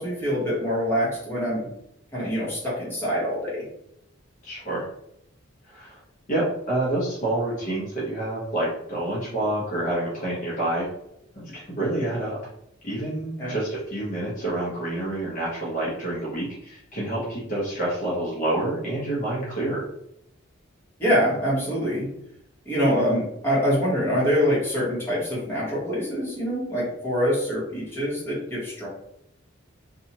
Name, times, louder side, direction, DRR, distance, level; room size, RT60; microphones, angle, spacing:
voice 1, 0.0-1.7 2.1-3.6 13.4-13.5 21.0-22.1 22.6-28.9, equal, 10° left, -8 dB, 1.2 m, -25 dB
voice 2, 4.4-4.9 5.7-6.0 6.3-10.9 11.3-12.4 12.8-19.9, right 1 dB, 40° left, -7 dB, 0.8 m, -28 dB
2.7 x 2.3 x 2.8 m, 0.77 s
head